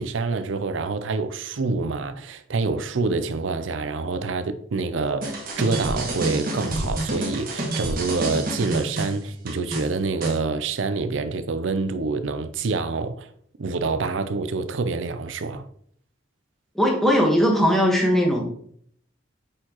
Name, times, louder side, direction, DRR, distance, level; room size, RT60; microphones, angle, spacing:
voice 1, 0.0-13.3 13.6-15.7, right 4 dB, 75° right, 0.5 m, -26 dB
sound 1, 5.2-10.4, right 1 dB, 45° right, 1.4 m, -29 dB
voice 2, 16.7-18.4, equal, ahead, 1.2 m, -19 dB
8.5 x 4.5 x 2.9 m
head